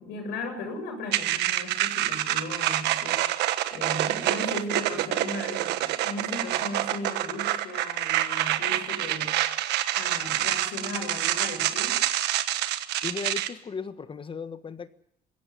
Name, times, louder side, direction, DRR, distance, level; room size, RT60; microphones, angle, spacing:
voice 1, 0.0-3.2 3.7-9.3 9.9-12.0, left 2 dB, 90° left, 4 dB, 7.7 m, -37 dB
sound 1, 1.1-13.5, right 14 dB, 85° right, 1.4 m, -27 dB
voice 2, 13.0-14.9, left 5 dB, 30° left, 12 dB, 1.4 m, -36 dB
21.5 x 16.5 x 9.8 m, 0.75 s
cardioid pair, 110°, 17 cm